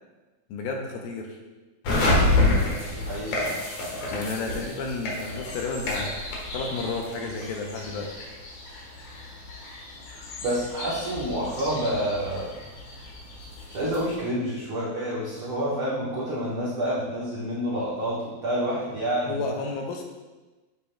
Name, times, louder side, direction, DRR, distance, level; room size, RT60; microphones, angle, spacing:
voice 1, 0.5-1.4 4.1-6.1 6.5-8.1 19.3-20.0, left 3 dB, 80° left, 2 dB, 2.4 m, -31 dB
sound 1, 1.8-14.2, left 2 dB, 60° left, 2.1 m, -29 dB
voice 2, 2.9-3.5 10.4-12.5 13.7-19.4, equal, 75° right, -8 dB, 1.2 m, -28 dB
8.1 x 7.3 x 2.2 m, 1.2 s
omnidirectional pair, 4.4 m